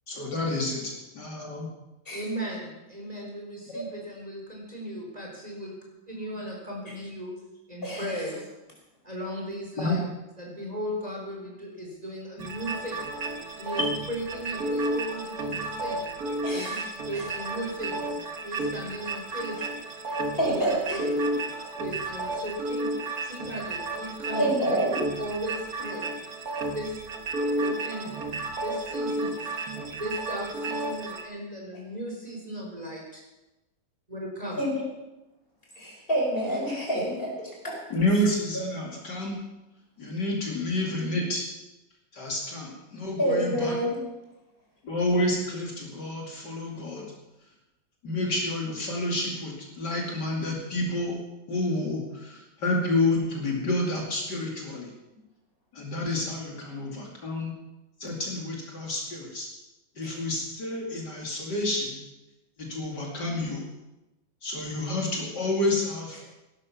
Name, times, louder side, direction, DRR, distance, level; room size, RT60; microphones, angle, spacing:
voice 1, 0.1-1.7 9.8-10.0 37.9-39.4 40.0-41.5 42.1-43.8 44.8-47.1 48.0-51.2 51.5-54.9 55.7-57.5 58.0-59.5 60.0-62.0 62.6-63.6 64.4-66.2, left 1 dB, 60° left, -1 dB, 3.2 m, -29 dB
voice 2, 2.1-5.7 6.1-7.3 7.7-8.4 9.0-10.0 10.4-13.1 13.6-13.8 14.1-16.1 16.5-16.8 17.1-18.0 18.4-19.6 20.3-20.6 20.9-21.1 21.7-22.9 23.2-24.8 25.2-26.1 26.7-26.9 27.5-28.2 28.6-29.7 30.0-33.0 34.1-34.6, equal, 20° right, -2 dB, 4.2 m, -36 dB
voice 3, 7.8-8.2 16.4-16.8 17.1-17.3 20.3-21.0 24.4-25.0 34.5-34.8 35.8-37.8 43.2-44.0 60.0-60.1, right 1 dB, 30° left, -2 dB, 5.3 m, -27 dB
sound 1, 12.4-31.2, right 2 dB, 50° right, 2.0 m, -32 dB
17.5 x 12.0 x 6.0 m, 1.0 s
omnidirectional pair, 2.0 m